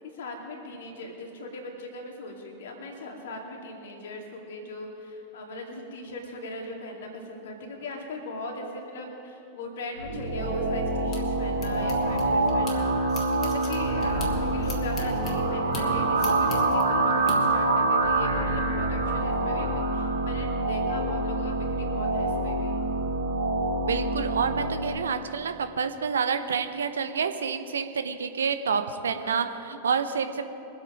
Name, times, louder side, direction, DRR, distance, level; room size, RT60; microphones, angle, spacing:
voice 1, 0.1-22.9 29.1-29.6, left 2 dB, 60° left, 1 dB, 2.5 m, -39 dB
sound 1, 10.0-24.9, right 2 dB, 85° right, 2.6 m, -26 dB
sound 2, 10.4-12.8 13.1-17.4, left 3 dB, 30° left, 2.4 m, -41 dB
voice 2, 23.8-30.5, right 6 dB, 70° right, 9 dB, 0.8 m, -28 dB
23.5 x 8.4 x 5.1 m, 3.0 s
figure-of-eight pair, 90°, 0 cm